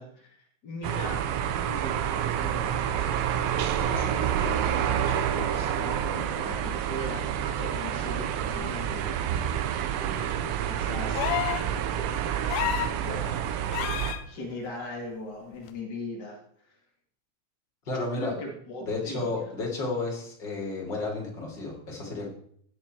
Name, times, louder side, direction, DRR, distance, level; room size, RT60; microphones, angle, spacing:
voice 1, 0.0-1.3 1.6-2.7 3.9-9.2 9.9-12.4 13.0-13.7 14.3-16.8 17.9-19.5, left 1 dB, 65° left, 0 dB, 1.0 m, -40 dB
sound 1, 0.8-14.1, right 9 dB, 85° right, 3.8 m, -28 dB
sound 2, 11.1-11.7 12.5-13.0 13.7-14.2 15.7-15.8, left 12 dB, 85° left, 3.3 m, -29 dB
voice 2, 17.9-18.3 18.8-22.3, left 3 dB, 25° left, -1 dB, 3.5 m, -32 dB
16.0 x 11.0 x 4.6 m, 0.63 s
omnidirectional pair, 6.0 m